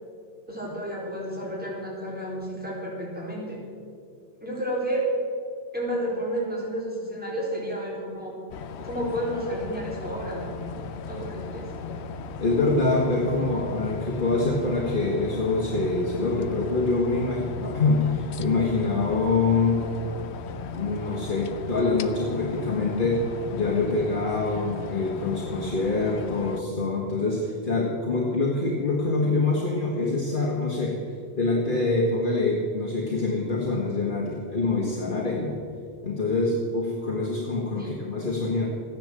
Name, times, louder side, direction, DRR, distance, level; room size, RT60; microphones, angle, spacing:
voice 1, 0.5-3.6 4.4-5.1 5.7-8.3 8.8-10.5 11.1-11.7 37.8-38.0, right 1 dB, 10° right, -5 dB, 4.2 m, -31 dB
sound 1, 8.5-26.6, left 4 dB, 70° left, 0.9 m, -37 dB
voice 2, 12.4-19.8 20.7-31.0 31.4-35.6 36.0-38.7, left 3 dB, 45° left, -3 dB, 1.9 m, -25 dB
14.5 x 10.5 x 7.6 m, 2.3 s
omnidirectional pair, 1.2 m